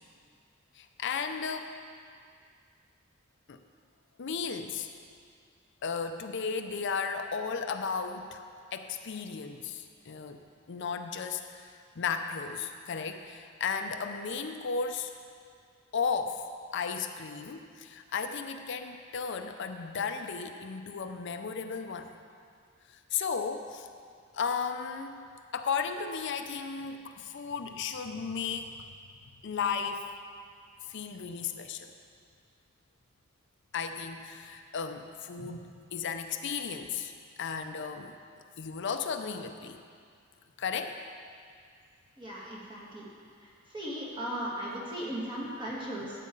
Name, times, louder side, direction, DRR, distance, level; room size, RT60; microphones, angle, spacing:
voice 1, 0.7-1.7 3.5-3.6 4.2-4.9 5.8-8.4 8.7-15.1 15.9-16.4 16.7-22.1 22.9-23.9 24.3-25.3 25.5-28.7 29.4-30.0 30.9-31.9 33.7-37.1 37.4-38.2 38.6-39.8 40.6-41.0, left 6 dB, 60° left, 7 dB, 0.5 m, -34 dB
voice 2, 42.2-43.1 43.7-46.1, right 1 dB, 25° right, -5 dB, 2.2 m, -37 dB
13.5 x 8.4 x 3.9 m, 2.2 s
head